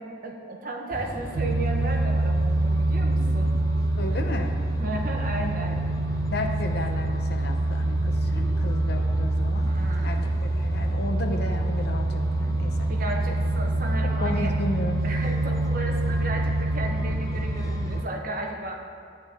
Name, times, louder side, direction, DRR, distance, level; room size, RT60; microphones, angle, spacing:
voice 1, 0.2-3.6 4.8-5.9 9.6-10.3 12.9-14.5 15.0-18.8, right 2 dB, 45° right, 1 dB, 1.1 m, -34 dB
sound 1, 0.9-18.0, left 1 dB, 15° left, 0.5 m, -36 dB
sound 2, 1.3-18.0, right 2 dB, 65° right, 0.5 m, -26 dB
voice 2, 4.0-4.5 6.3-9.7 10.0-12.9 14.0-15.0, left 2 dB, 55° left, 4 dB, 0.8 m, -33 dB
12.0 x 8.7 x 3.6 m, 2.3 s
head